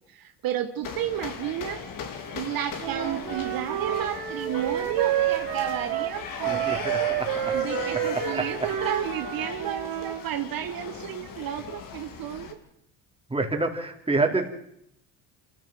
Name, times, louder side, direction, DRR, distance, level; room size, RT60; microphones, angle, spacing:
voice 1, 0.1-1.8 2.3-7.2 7.5-12.5, right 11 dB, 60° right, 7 dB, 1.5 m, -32 dB
sound 1, 0.8-12.5, left 6 dB, 55° left, 3.4 m, -38 dB
Wind instrument woodwind instrument, 2.8-10.2, right 11 dB, 75° right, 3.0 m, -29 dB
voice 2, 6.5-7.5 8.0-8.7 13.3-14.5, right 3 dB, 15° right, 3 dB, 3.9 m, -28 dB
25.5 x 15.0 x 7.7 m, 0.75 s
supercardioid pair, 90°, 40 cm